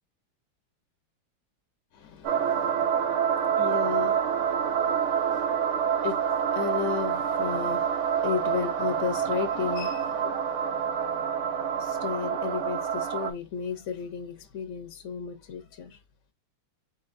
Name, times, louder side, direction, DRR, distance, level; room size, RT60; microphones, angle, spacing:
voice 1, 1.9-16.0, left 7 dB, 60° left, 0.7 m, -35 dB
sound 1, 2.2-13.3, right 8 dB, 75° right, 1.8 m, -27 dB
4.5 x 4.1 x 2.6 m
omnidirectional pair, 2.4 m